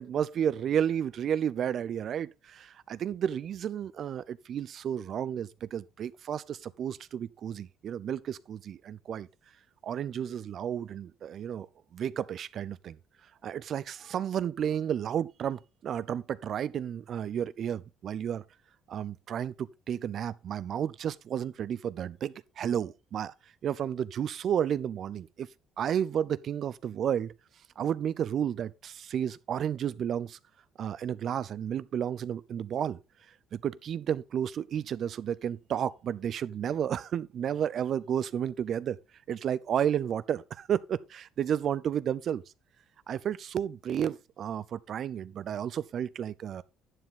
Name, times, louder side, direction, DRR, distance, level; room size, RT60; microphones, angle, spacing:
voice 1, 0.0-9.3 9.8-11.7 11.9-13.0 13.4-18.4 18.9-23.3 23.6-25.5 25.8-27.3 27.8-30.4 30.8-33.0 33.5-39.0 39.3-42.4 43.1-46.6, right 9 dB, 55° right, 0.6 m, -32 dB
11.0 x 7.2 x 3.8 m
supercardioid pair, 85°, 0 cm